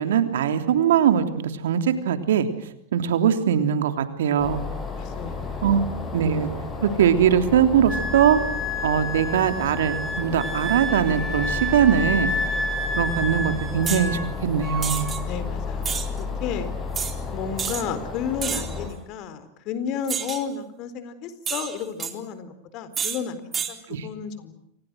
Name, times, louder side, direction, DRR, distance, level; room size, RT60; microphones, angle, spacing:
voice 1, 0.0-2.5 2.9-4.6 5.6-5.8 6.1-6.5 6.8-8.4 8.8-12.3 12.9-15.1 23.9-24.1, right 8 dB, 70° right, 8 dB, 3.2 m, -21 dB
sound 1, 4.4-18.9, left 5 dB, 25° left, 7.2 m, -32 dB
voice 2, 4.9-5.6 15.2-16.7 17.3-24.5, left 7 dB, 50° left, 13 dB, 4.3 m, -32 dB
Wind instrument woodwind instrument, 7.9-14.3 14.6-15.2, equal, ahead, 7.8 m, -30 dB
sound 2, 13.8-14.1 14.8-15.2 15.8-16.1 16.9-17.1 17.6-17.8 18.4-18.8 20.1-20.4 21.4-22.1 22.9-23.2 23.5-23.7, right 7 dB, 25° right, 4.0 m, -29 dB
29.5 x 26.0 x 6.4 m, 0.76 s
hypercardioid pair, 95°, 0 cm